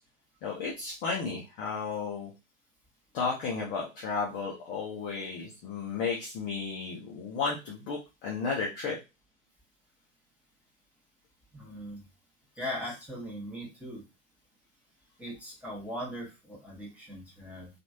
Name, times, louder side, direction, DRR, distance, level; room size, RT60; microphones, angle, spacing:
voice 1, 0.4-2.3 3.1-9.0, left 5 dB, 25° left, -2 dB, 0.5 m, -33 dB
voice 2, 11.5-12.0 12.6-14.0 15.2-17.7, equal, 5° right, -4 dB, 1.0 m, -39 dB
2.9 x 2.4 x 2.7 m, 0.26 s
figure-of-eight pair, 105°, 39 cm